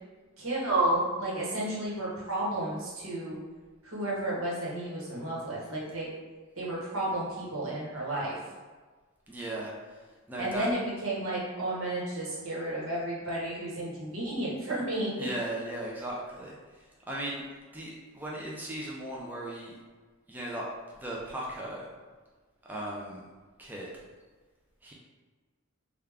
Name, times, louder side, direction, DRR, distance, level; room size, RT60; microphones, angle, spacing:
voice 1, 0.4-3.4 3.8-6.1 6.6-8.4 10.4-15.3, right 1 dB, 75° right, -5 dB, 1.1 m, -32 dB
voice 2, 9.3-9.7 10.3-10.7 15.2-16.5 17.1-17.4 17.7-19.7 20.3-20.7 21.0-21.9 22.7-23.2 23.6-23.9 24.8-24.9, right 1 dB, 10° right, -4 dB, 0.3 m, -36 dB
3.4 x 2.3 x 3.4 m, 1.4 s
head